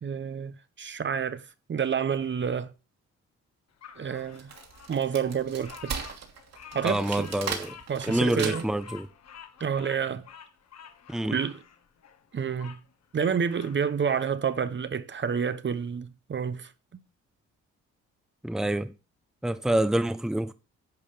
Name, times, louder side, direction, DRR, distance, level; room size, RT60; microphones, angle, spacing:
voice 1, 0.0-2.7 4.0-4.5 4.9-5.9 6.7-7.5 7.9-8.7 9.6-10.3 11.2-11.6 12.3-12.8 13.1-16.7, right 7 dB, 40° right, 1.0 m, -29 dB
Bird vocalization bird call bird song, 3.8-12.8 13.2-14.3, left 8 dB, 60° left, 1.7 m, -48 dB
Wood, 4.2-8.9, right 6 dB, 60° right, 2.9 m, -37 dB
voice 2, 6.8-7.7 8.1-9.1 11.1-11.4 18.4-18.9 19.4-20.5, right 1 dB, ahead, 0.9 m, -27 dB
10.5 x 5.4 x 6.7 m
cardioid pair, 90°, 30 cm